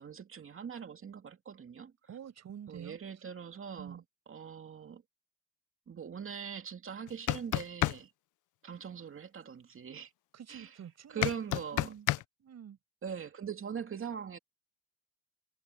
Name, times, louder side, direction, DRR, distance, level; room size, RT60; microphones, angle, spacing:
voice 1, 0.0-1.9 2.7-4.0 4.3-5.0 5.9-8.1 8.6-10.1 10.5-10.8 11.1-11.9 13.0-14.4, right 7 dB, 45° right, 2.6 m, -42 dB
voice 2, 2.1-3.0 3.8-4.0 10.3-11.3 11.7-12.1 12.4-12.8, right 9 dB, 60° right, 6.9 m, -47 dB
sound 1, 7.1-8.0 11.2-12.2, left 17 dB, 80° left, 0.5 m, -29 dB
cardioid pair, 90°, 30 cm